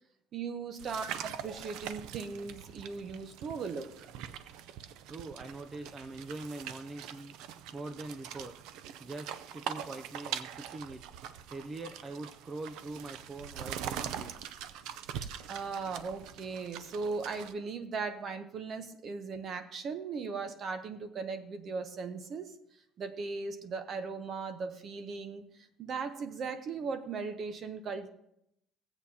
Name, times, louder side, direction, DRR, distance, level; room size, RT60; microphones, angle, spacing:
voice 1, 0.3-4.1 15.5-22.5 23.0-25.4 25.8-28.1, right 4 dB, 35° right, 10 dB, 0.8 m, -38 dB
sound 1, 0.8-17.5, right 9 dB, 75° right, 0.5 m, -43 dB
voice 2, 5.1-7.4 7.7-8.5 9.0-11.0 11.5-14.3, right 2 dB, 20° right, 8 dB, 0.4 m, -43 dB
17.0 x 8.0 x 2.8 m, 0.78 s
cardioid pair, 170°, 0 cm